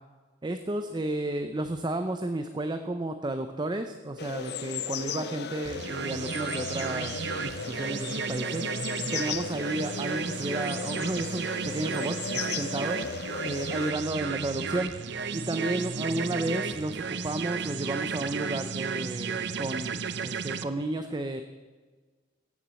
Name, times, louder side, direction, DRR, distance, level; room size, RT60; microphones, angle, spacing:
voice 1, 0.4-8.7 9.1-13.2 13.4-14.9 15.3-21.4, right 2 dB, 25° right, 8 dB, 0.6 m, -32 dB
sound 1, 4.2-13.9, left 6 dB, 60° left, 0.8 m, -36 dB
sound 2, 5.6-20.6, right 5 dB, 65° right, 0.6 m, -33 dB
17.0 x 7.3 x 7.5 m, 1.4 s
head